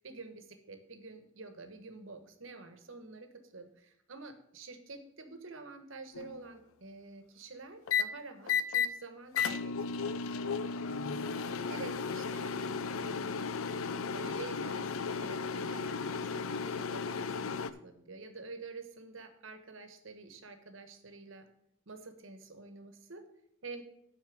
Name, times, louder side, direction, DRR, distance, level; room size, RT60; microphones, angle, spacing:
voice 1, 0.0-10.8 11.7-12.6 12.9-13.3 14.1-21.5 21.9-23.3 23.6-23.8, right 3 dB, 70° right, 7 dB, 1.2 m, -48 dB
sound 1, 6.1-6.5 7.9-8.0 8.5-8.9 9.3-17.7, left 6 dB, 80° left, 0.5 m, -34 dB
9.4 x 4.3 x 7.4 m, 0.73 s
head